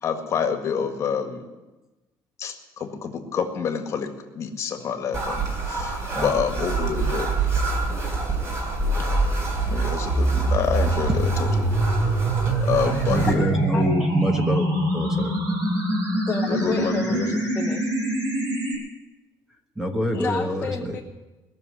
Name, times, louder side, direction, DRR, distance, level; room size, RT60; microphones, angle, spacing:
voice 1, 0.0-1.4 2.4-4.1 4.4-7.3 9.7-11.7 12.6-13.5 16.5-17.4, left 7 dB, 40° left, 5 dB, 1.8 m, -28 dB
sound 1, 5.1-13.3, right 4 dB, 35° right, 3.7 m, -28 dB
sound 2, 8.8-18.8, right 1 dB, 65° right, 6.2 m, -24 dB
voice 2, 13.1-14.7 14.9-15.4 19.8-20.9, equal, 5° right, 4 dB, 1.3 m, -25 dB
voice 3, 16.3-17.9 20.1-21.0, left 4 dB, 20° left, 0 dB, 1.1 m, -30 dB
21.0 x 7.1 x 9.7 m, 1.1 s
cardioid pair, 160°, 8 cm